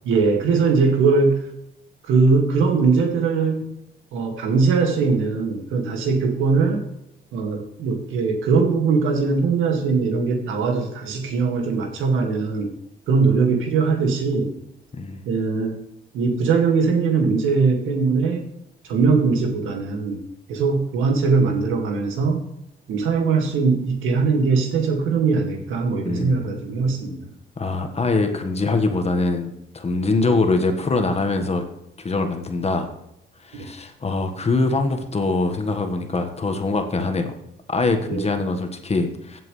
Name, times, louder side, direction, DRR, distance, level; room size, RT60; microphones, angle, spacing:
voice 1, 0.1-1.5 2.1-3.7 4.1-6.8 7.3-12.7 13.1-14.5 15.3-15.8 16.1-18.5 18.9-22.4 22.9-27.2 30.2-30.4 33.5-33.7 38.0-38.3, right 4 dB, 85° right, 2 dB, 2.2 m, -21 dB
voice 2, 14.9-15.2 26.0-26.5 27.6-31.6 32.0-32.9 33.4-37.3 37.7-39.4, left 3 dB, 30° left, 6 dB, 1.5 m, -23 dB
16.0 x 7.7 x 3.3 m, 0.80 s
cardioid pair, 90°, 20 cm